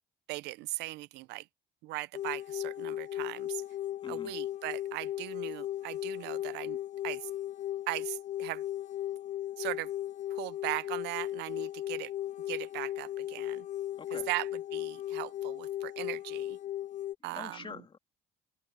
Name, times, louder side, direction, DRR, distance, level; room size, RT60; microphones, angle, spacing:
voice 1, 0.3-1.5 1.8-3.6 4.1-6.8 7.0-7.3 7.9-8.6 9.6-9.9 10.3-12.1 12.5-13.7 14.1-16.6 17.2-17.7, right 20 dB, 85° right, 0.5 m, -38 dB
sound 1, 2.1-17.1, left 12 dB, 45° left, 0.4 m, -37 dB
voice 2, 4.0-4.3 14.0-14.3 17.3-18.0, left 5 dB, 30° left, 2.2 m, -45 dB
open air
cardioid pair, 110°, 17 cm